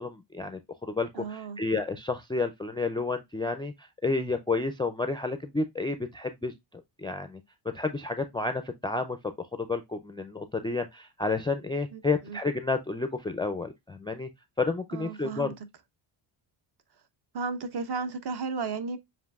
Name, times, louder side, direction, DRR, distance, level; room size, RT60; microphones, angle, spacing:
voice 1, 0.0-7.4 7.7-14.3 14.6-15.5, left 3 dB, 10° left, 0.3 m, -31 dB
voice 2, 1.1-1.6 11.9-12.0 12.3-12.4 14.9-15.5 17.3-19.0, right 4 dB, 50° right, 1.0 m, -34 dB
7.3 x 2.6 x 2.3 m
cardioid pair, 95°, 49 cm